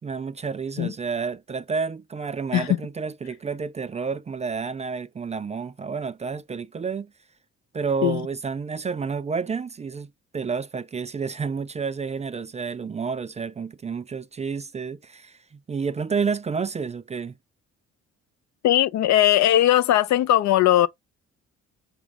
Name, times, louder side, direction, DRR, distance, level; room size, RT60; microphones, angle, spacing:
voice 1, 0.0-7.1 7.7-17.3, right 5 dB, 25° right, 0.3 m, -30 dB
voice 2, 18.6-20.9, left 13 dB, 65° left, 0.5 m, -19 dB
6.0 x 2.4 x 3.3 m
cardioid pair, 90°, 30 cm